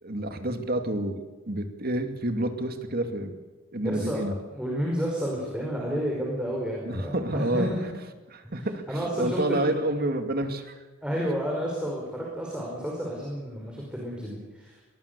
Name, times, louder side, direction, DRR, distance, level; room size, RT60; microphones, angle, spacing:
voice 1, 0.0-3.3 3.7-4.3 6.9-7.7 8.3-10.8, right 1 dB, 50° right, 7 dB, 2.4 m, -29 dB
voice 2, 3.8-4.2 4.5-7.8 8.6-9.8 11.0-14.7, equal, 5° right, -3 dB, 5.1 m, -31 dB
22.5 x 20.5 x 6.9 m, 1.2 s
head